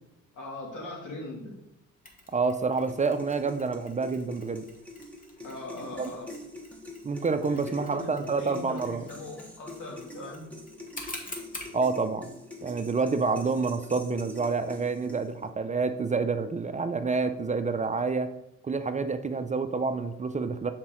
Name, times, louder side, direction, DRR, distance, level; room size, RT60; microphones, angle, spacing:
voice 1, 0.3-1.5 5.4-6.3 7.5-10.5, left 2 dB, 75° left, -1 dB, 2.3 m, -40 dB
Mechanisms, 2.0-11.8, left 1 dB, 30° left, 1.5 m, -47 dB
voice 2, 2.3-4.7 6.0-6.1 7.0-9.1 11.7-12.3 12.6-18.3 18.6-20.7, right 4 dB, 25° right, 9 dB, 0.5 m, -28 dB
sound 1, 2.9-15.5, left 1 dB, 5° left, 1.2 m, -45 dB
6.0 x 4.7 x 4.3 m, 0.85 s
cardioid pair, 90°, 30 cm